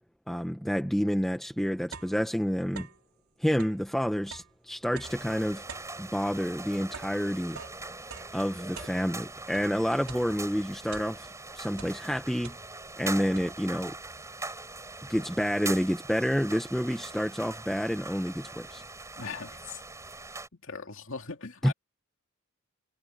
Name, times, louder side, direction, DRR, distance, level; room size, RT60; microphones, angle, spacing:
voice 1, 0.3-2.9 3.4-5.6 6.0-7.6 8.3-12.6 13.0-14.0 15.1-18.8 21.6-21.7, equal, ahead, 0.8 m, -29 dB
sound 1, 1.5-3.1 3.5-9.7 10.1-11.4 11.7-13.0 13.4-13.9 14.5-14.6 14.9-16.1, right 5 dB, 85° right, 3.1 m, -47 dB
sound 2, 5.0-20.5, right 3 dB, 15° right, 7.8 m, -42 dB
voice 2, 19.2-19.8 20.6-21.7, left 4 dB, 60° left, 2.6 m, -39 dB
head